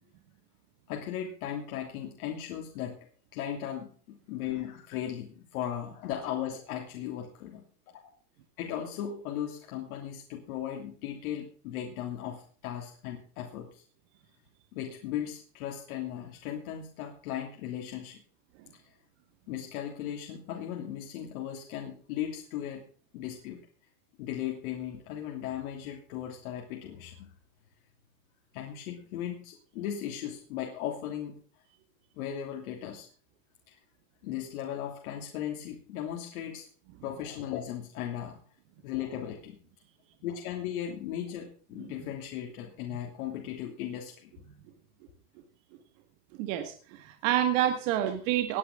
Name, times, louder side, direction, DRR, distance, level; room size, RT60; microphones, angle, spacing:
voice 1, 0.9-3.0 3.3-7.6 8.6-13.8 14.7-18.2 19.5-22.9 23.1-23.6 24.2-27.3 28.5-31.3 32.2-33.1 33.7-33.8 34.2-36.7 37.0-38.4 38.8-39.6 40.2-44.3, left 10 dB, 60° left, 1 dB, 3.0 m, -37 dB
voice 2, 46.4-48.6, right 11 dB, 55° right, 7 dB, 1.9 m, -28 dB
19.5 x 9.7 x 3.8 m, 0.43 s
supercardioid pair, 140°, 47 cm